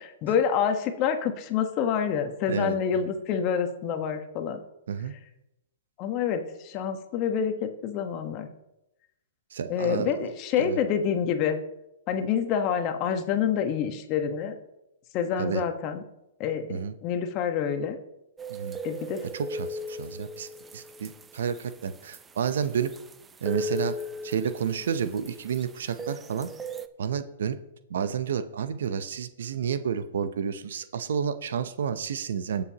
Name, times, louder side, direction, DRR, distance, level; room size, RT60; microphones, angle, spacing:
voice 1, 0.2-4.6 6.0-8.5 9.7-11.6 12.1-14.5 15.1-16.0 16.4-16.7 17.0-18.0 18.8-19.2, left 7 dB, 40° left, 6 dB, 1.2 m, -27 dB
voice 2, 2.4-2.8 4.9-5.1 9.5-10.3 10.6-10.8 15.4-15.6 16.7-16.9 18.5-18.8 19.3-20.5 20.7-22.9 23.4-23.9 24.2-26.5 27.0-27.6 27.9-32.6, right 7 dB, 75° right, 12 dB, 0.7 m, -30 dB
sound 1, 18.4-26.9, equal, 15° right, 0.5 m, -38 dB
20.0 x 7.0 x 2.9 m, 0.88 s
hypercardioid pair, 130°, 0 cm